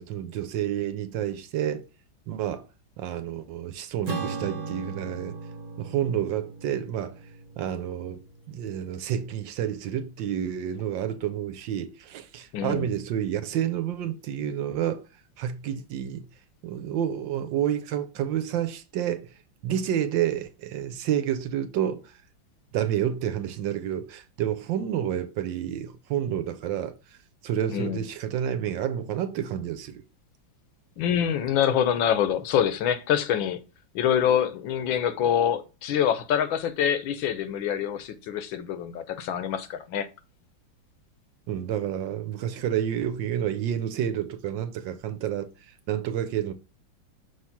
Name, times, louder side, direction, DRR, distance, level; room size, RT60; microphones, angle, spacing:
voice 1, 0.0-1.9 2.3-2.7 3.0-5.4 5.8-7.2 7.6-15.0 15.4-16.3 16.6-19.3 19.6-22.2 22.7-27.0 27.4-30.0 41.5-46.5, right 10 dB, 75° right, 1.4 m, -29 dB
Acoustic guitar / Strum, 4.1-8.8, right 4 dB, 40° right, 0.6 m, -37 dB
voice 2, 12.5-12.9 27.7-28.0 31.0-33.6 33.9-40.1, left 9 dB, 80° left, 1.5 m, -25 dB
6.0 x 3.2 x 5.7 m
omnidirectional pair, 2.1 m